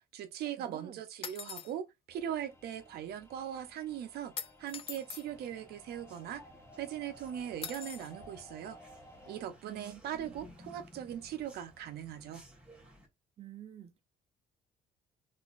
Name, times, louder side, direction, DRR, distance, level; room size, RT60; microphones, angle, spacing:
voice 1, 0.0-4.3 4.6-6.4 6.8-8.8 9.3-12.4, right 10 dB, 70° right, 0.8 m, -40 dB
voice 2, 0.6-1.0 9.6-10.3 13.4-14.0, right 10 dB, 35° right, 0.8 m, -49 dB
sound 1, 1.2-1.7 4.4-5.3 7.6-8.1, left 7 dB, 35° left, 0.4 m, -42 dB
sound 2, 2.1-9.4, left 1 dB, 15° left, 0.9 m, -56 dB
sound 3, 5.3-13.1, equal, 5° right, 1.3 m, -57 dB
3.9 x 2.7 x 2.5 m
cardioid pair, 110°, 17 cm